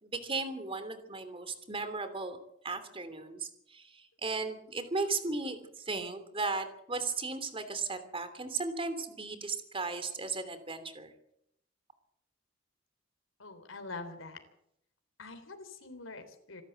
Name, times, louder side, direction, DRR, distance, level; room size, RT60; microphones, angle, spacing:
voice 1, 0.0-2.4 2.6-5.6 5.8-11.1, right 3 dB, 30° right, 10 dB, 3.0 m, -36 dB
voice 2, 13.4-14.4 15.2-16.6, left 3 dB, 85° left, 8 dB, 3.5 m, -44 dB
26.0 x 12.5 x 8.0 m, 0.75 s
head